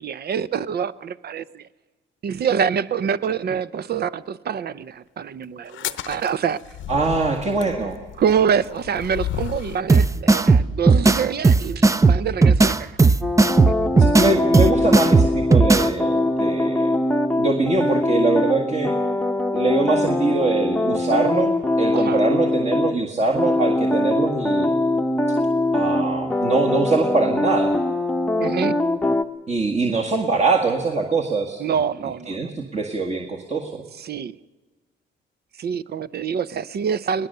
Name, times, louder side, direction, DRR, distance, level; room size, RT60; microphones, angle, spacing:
voice 1, 0.0-1.7 2.2-6.6 8.2-13.0 21.9-22.2 28.4-28.8 31.6-32.5 33.9-34.3 35.6-37.3, right 7 dB, 55° right, 16 dB, 0.7 m, -25 dB
sound 1, 5.7-9.9, left 11 dB, 80° left, 0.8 m, -33 dB
voice 2, 6.9-8.0 14.0-16.9 17.4-18.9 19.5-24.8 25.7-27.8 29.5-31.6 32.3-33.8, right 3 dB, 35° right, 1 dB, 1.7 m, -23 dB
sound 2, 9.9-15.9, right 3 dB, 15° right, 0.5 m, -16 dB
sound 3, 13.2-22.9 23.3-29.2, left 1 dB, 5° left, 0.9 m, -22 dB
20.5 x 19.5 x 6.7 m, 1.3 s
cardioid pair, 90°, 20 cm